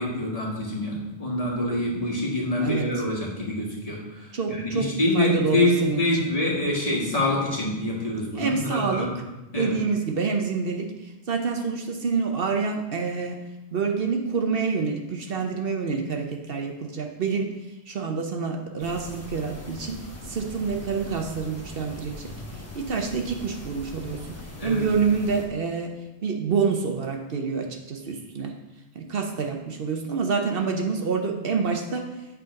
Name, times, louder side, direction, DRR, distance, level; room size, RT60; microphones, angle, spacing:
voice 1, 0.0-9.1 9.5-9.8 24.6-24.8, left 1 dB, 35° left, -4 dB, 1.7 m, -26 dB
voice 2, 4.3-4.9 5.1-6.1 8.3-9.1 9.5-13.4 13.7-17.5 17.9-20.0 20.3-25.9 26.2-28.5 28.9-32.0, right 5 dB, 65° right, 3 dB, 0.9 m, -27 dB
sound 1, 18.8-25.5, left 1 dB, 15° left, 1.0 m, -40 dB
8.3 x 3.8 x 5.1 m, 1.0 s
omnidirectional pair, 1.1 m